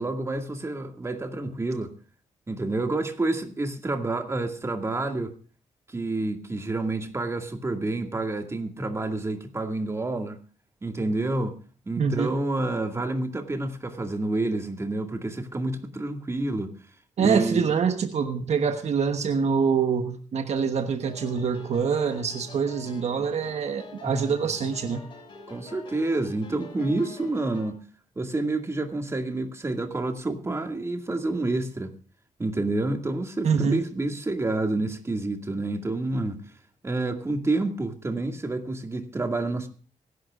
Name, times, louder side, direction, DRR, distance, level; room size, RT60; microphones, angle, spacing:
voice 1, 0.0-1.9 2.5-5.3 5.9-10.4 10.8-11.6 11.9-16.7 17.2-17.6 23.2-23.3 24.0-24.3 25.5-27.8 28.2-31.9 32.4-36.4 36.8-39.7, right 2 dB, 20° right, 2.1 m, -28 dB
voice 2, 12.0-12.3 17.2-25.0 33.4-33.8, right 6 dB, 65° right, 1.2 m, -25 dB
sound 1, 21.0-27.7, left 3 dB, 40° left, 6.2 m, -46 dB
24.0 x 12.0 x 2.4 m
cardioid pair, 120°, 12 cm